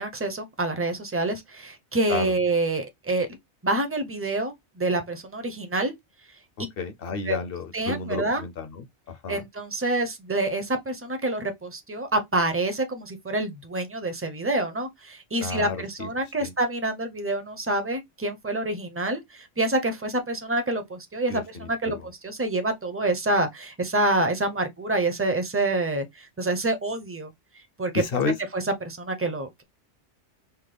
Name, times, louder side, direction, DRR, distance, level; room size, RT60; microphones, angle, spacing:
voice 1, 0.0-3.3 3.6-5.9 7.3-7.4 7.7-8.4 9.3-19.2 19.6-27.3 27.8-28.0 28.5-29.6, right 2 dB, 20° right, 0.4 m, -27 dB
voice 2, 6.6-9.4 15.4-16.1 16.4-16.5 21.3-22.1 27.9-28.3, left 4 dB, 60° left, 0.7 m, -31 dB
5.6 x 2.1 x 3.3 m
omnidirectional pair, 1.2 m